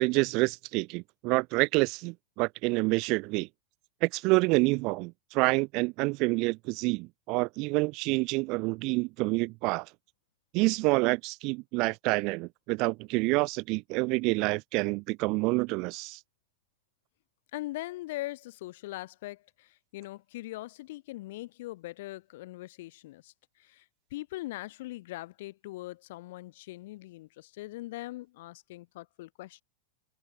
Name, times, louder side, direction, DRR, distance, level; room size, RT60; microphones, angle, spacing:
voice 1, 0.0-3.5 4.0-9.9 10.5-16.2, right 26 dB, 40° right, 1.1 m, -27 dB
voice 2, 17.5-23.8 24.1-29.6, left 18 dB, 55° left, 4.9 m, -41 dB
figure-of-eight pair, 90°, 0 cm